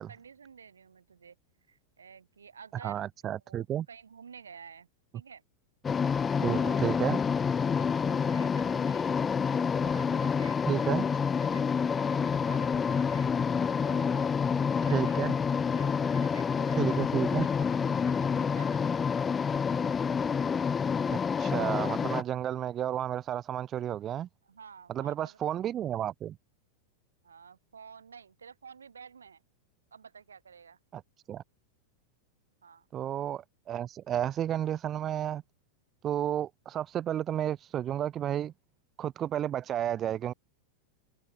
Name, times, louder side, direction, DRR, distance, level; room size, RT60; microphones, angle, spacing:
voice 1, 0.0-1.4 1.7-4.9 5.1-5.4 6.3-6.9 7.6-9.1 9.7-13.3 13.8-15.4 15.7-17.0 17.3-19.0 24.4-25.4 27.2-29.4 29.9-30.8 32.6-32.9, right 6 dB, 70° right, 4.3 m, -51 dB
voice 2, 2.8-3.9 6.4-7.2 10.7-11.0 14.9-15.3 16.8-17.5 21.1-24.3 24.9-26.4 30.9-31.0 31.3-31.4 32.9-35.4 36.0-38.5 39.0-40.3, right 11 dB, 30° right, 0.7 m, -32 dB
sound 1, 5.8-22.2, left 6 dB, 20° left, 0.9 m, -28 dB
figure-of-eight pair, 90°, 0 cm